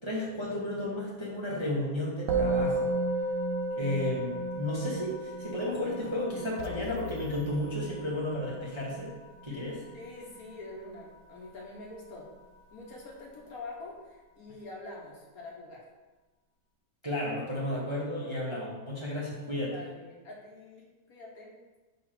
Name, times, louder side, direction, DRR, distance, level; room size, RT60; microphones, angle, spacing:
voice 1, 0.0-2.9 3.7-9.1 9.4-9.8 17.0-19.7, left 1 dB, 20° right, -6 dB, 1.0 m, -33 dB
Musical instrument, 2.3-11.8, right 2 dB, 55° right, 1.0 m, -34 dB
sound 1, 6.6-8.6, left 8 dB, 75° left, 0.7 m, -46 dB
voice 2, 9.9-12.3 12.7-15.9 19.7-21.6, left 2 dB, 55° left, -2 dB, 1.5 m, -45 dB
4.9 x 4.3 x 5.8 m, 1.2 s
omnidirectional pair, 1.9 m